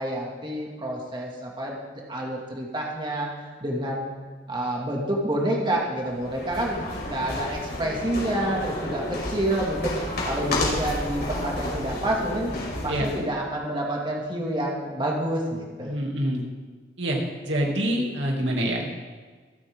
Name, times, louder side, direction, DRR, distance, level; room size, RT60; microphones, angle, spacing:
voice 1, 0.0-1.8 2.1-3.3 3.6-4.1 4.5-10.0 10.3-16.0, right 1 dB, 25° right, -2 dB, 2.1 m, -28 dB
sound 1, 6.0-13.2, left 1 dB, 60° left, 5.0 m, -31 dB
voice 2, 15.8-16.4 17.0-17.2 17.4-18.9, right 1 dB, 80° right, -1 dB, 2.6 m, -26 dB
26.5 x 9.0 x 3.7 m, 1.4 s
head